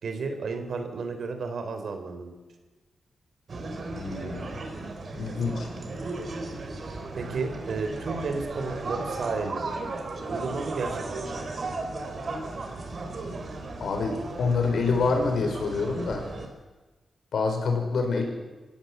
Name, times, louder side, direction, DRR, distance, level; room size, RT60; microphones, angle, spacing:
voice 1, 0.0-2.3 7.2-9.8 10.3-11.1, right 4 dB, 60° right, 7 dB, 3.6 m, -32 dB
sound 1, 3.5-16.5, right 3 dB, 40° right, 4.0 m, -35 dB
voice 2, 3.9-4.6 5.1-5.7 13.8-16.2 17.3-18.2, left 4 dB, 60° left, 4 dB, 5.7 m, -26 dB
27.5 x 16.5 x 7.9 m, 1.2 s
wide cardioid pair, 160°, 0 cm